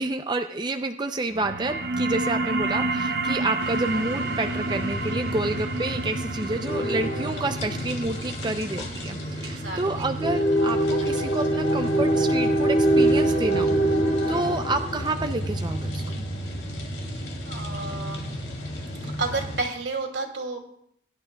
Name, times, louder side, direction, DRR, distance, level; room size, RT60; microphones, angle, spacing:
voice 1, 0.0-13.8 14.3-16.0, right 2 dB, 25° right, 6 dB, 0.5 m, -29 dB
sound 1, 1.3-12.4, right 2 dB, 60° right, 0.8 m, -31 dB
voice 2, 2.2-2.6 9.4-10.1 14.3-14.7 17.5-18.3 19.0-20.6, right 3 dB, 85° right, 2 dB, 2.4 m, -32 dB
sound 2, 3.6-19.6, right 1 dB, 75° left, 2.6 m, -26 dB
22.0 x 11.0 x 2.3 m, 0.69 s
head